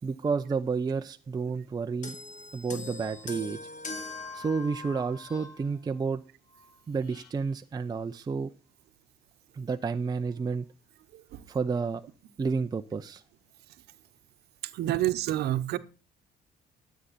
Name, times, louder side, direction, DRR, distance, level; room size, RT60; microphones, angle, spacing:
voice 1, 0.0-2.2 2.5-3.6 4.3-6.2 6.9-8.5 9.5-10.7 11.5-12.0 12.4-13.2, right 5 dB, 25° right, 0.6 m, -30 dB
sound 1, 2.0-5.6 6.5-6.7, left 3 dB, 45° left, 2.3 m, -41 dB
sound 2, 4.6-5.9 6.8-7.7, left 5 dB, 75° left, 2.7 m, -59 dB
voice 2, 11.1-11.4 14.6-15.8, right 14 dB, 75° right, 1.0 m, -29 dB
12.5 x 8.0 x 4.2 m
cardioid pair, 110°, 17 cm